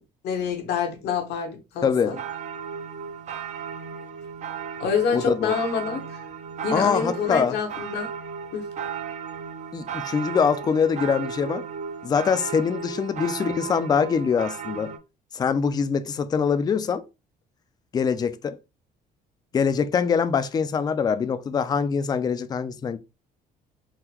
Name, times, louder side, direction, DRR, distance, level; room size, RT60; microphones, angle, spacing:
voice 1, 0.2-2.2 4.8-6.2 6.6-8.1 8.5-8.7, left 6 dB, 75° left, 0.9 m, -27 dB
voice 2, 1.8-2.2 5.1-5.5 6.7-7.6 9.7-11.6 12.0-14.9 15.3-17.0 17.9-18.6 19.5-23.0, left 6 dB, 25° left, 0.3 m, -23 dB
sound 1, 2.1-15.0, right 7 dB, 45° right, 0.5 m, -35 dB
3.7 x 2.2 x 2.9 m
cardioid pair, 110°, 17 cm